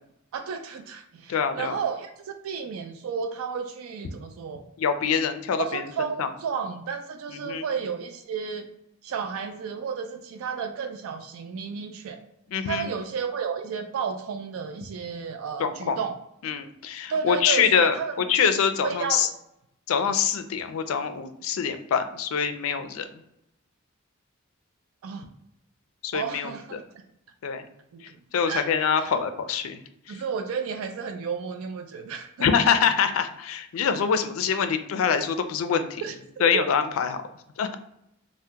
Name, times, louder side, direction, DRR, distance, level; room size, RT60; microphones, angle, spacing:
voice 1, 0.3-4.6 5.6-8.7 9.0-12.2 12.7-16.2 17.1-18.2 18.8-19.3 25.0-25.3 26.1-26.8 27.9-28.0 28.5-29.1 30.1-32.5 36.0-36.1 36.5-36.6, right 6 dB, 85° right, 6 dB, 0.3 m, -32 dB
voice 2, 1.3-1.8 4.8-6.3 7.4-7.6 12.5-12.9 15.6-16.0 16.4-17.9 18.3-19.3 19.9-23.1 26.0-26.8 27.4-27.6 28.3-29.8 30.1-30.2 32.4-36.0 36.4-37.2 37.6-37.7, left 7 dB, 80° left, 9 dB, 0.4 m, -25 dB
2.7 x 2.1 x 3.4 m, 0.79 s
head